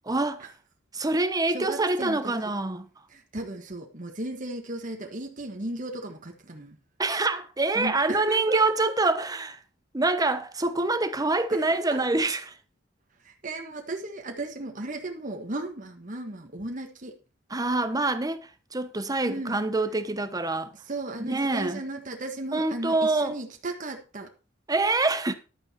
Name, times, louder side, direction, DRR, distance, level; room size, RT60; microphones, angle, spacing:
voice 1, 0.1-0.5 0.9-2.9 7.0-9.6 9.9-12.5 17.5-20.7 21.2-21.8 22.5-23.4 24.7-25.3, right 2 dB, 20° right, 1.0 m, -26 dB
voice 2, 1.5-2.3 3.1-6.8 7.7-8.6 11.5-12.0 13.2-17.1 19.2-19.6 20.8-24.3, right 2 dB, 45° right, 1.4 m, -35 dB
11.5 x 8.9 x 4.3 m
head